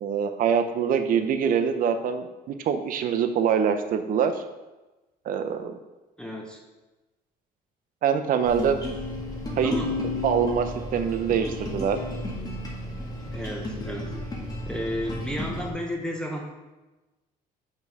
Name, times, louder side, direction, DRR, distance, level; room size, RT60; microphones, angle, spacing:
voice 1, 0.0-4.4 5.2-5.7 8.0-8.8 9.6-9.7 10.2-12.0, right 7 dB, 55° right, 7 dB, 0.6 m, -24 dB
voice 2, 6.2-6.6 9.6-9.9 13.3-14.2 14.7-16.4, equal, 5° left, 0 dB, 1.0 m, -32 dB
sound 1, 8.5-15.7, left 2 dB, 20° left, 1.6 m, -33 dB
5.3 x 4.8 x 5.3 m, 1.1 s
cardioid pair, 110°, 17 cm